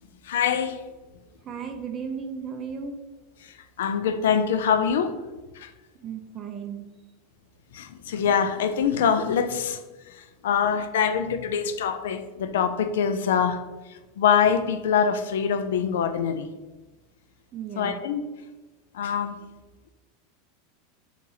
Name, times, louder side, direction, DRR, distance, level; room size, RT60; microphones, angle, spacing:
voice 1, 0.3-0.8 3.8-5.1 5.6-5.7 7.7-9.8 10.4-13.6 14.2-16.5 17.8-18.2 18.9-19.4, left 7 dB, 90° left, 10 dB, 0.3 m, -24 dB
voice 2, 1.4-3.0 6.0-6.9 17.5-18.0, right 6 dB, 35° right, 5 dB, 0.3 m, -35 dB
3.0 x 2.8 x 3.8 m, 1.1 s
supercardioid pair, 135°, 0 cm